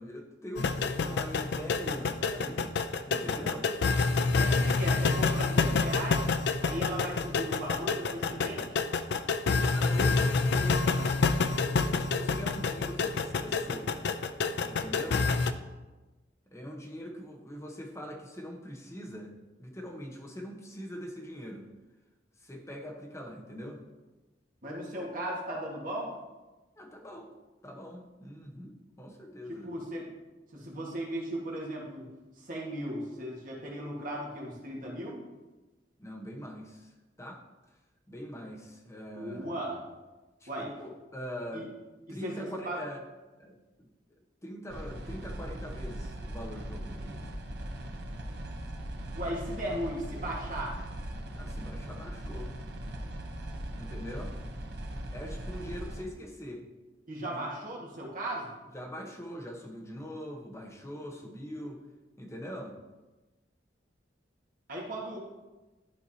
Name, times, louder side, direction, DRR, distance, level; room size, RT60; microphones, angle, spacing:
voice 1, 0.0-2.7 3.1-3.7 4.5-4.7 9.7-11.2 11.6-13.9 14.6-15.3 16.5-19.3 19.6-21.7 22.4-23.8 26.8-27.3 27.6-29.7 36.0-37.4 38.1-39.5 40.4-41.7 42.1-43.0 43.4-43.6 44.4-47.2 51.3-52.5 53.8-54.3 55.1-56.6 57.3-57.4 58.7-61.8 62.2-62.8, equal, 15° left, 0 dB, 1.0 m, -42 dB
sound 1, 0.6-15.5, left 4 dB, 65° left, 0.4 m, -28 dB
voice 2, 4.4-8.8 24.6-26.1 29.5-30.1 30.5-32.1 32.4-35.2 39.1-39.8 40.5-40.7 41.5-41.6 42.1-42.8 49.1-50.8 57.1-58.5 64.7-65.2, right 1 dB, 50° right, -3 dB, 1.6 m, -37 dB
sound 2, 44.7-56.0, right 1 dB, 65° right, 0.8 m, -39 dB
11.5 x 4.6 x 2.8 m, 1.1 s
head